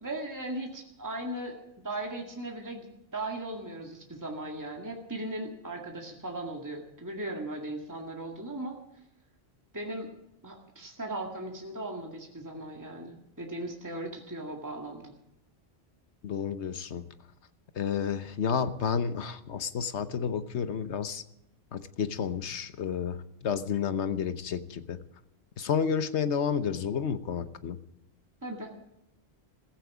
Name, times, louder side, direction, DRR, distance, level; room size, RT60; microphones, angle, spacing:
voice 1, 0.0-8.8 9.7-10.1 10.4-15.1 28.4-28.9, right 1 dB, 15° right, 1 dB, 2.1 m, -38 dB
voice 2, 16.2-17.1 17.7-21.2 21.7-25.0 25.6-27.8, left 7 dB, 85° left, 12 dB, 1.3 m, -31 dB
15.5 x 15.5 x 4.9 m, 0.86 s
omnidirectional pair, 1.1 m